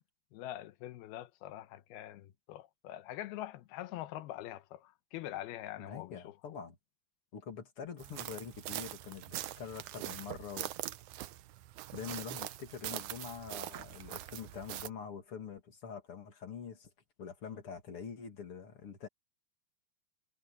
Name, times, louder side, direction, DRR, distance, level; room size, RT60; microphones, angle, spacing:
voice 1, 0.3-6.6, left 14 dB, 85° left, 2.8 m, -44 dB
voice 2, 5.8-6.8 7.3-10.7 11.9-16.9 17.2-19.1, left 6 dB, 40° left, 2.9 m, -45 dB
sound 1, 8.0-14.9, right 14 dB, 80° right, 1.8 m, -43 dB
omnidirectional pair, 4.5 m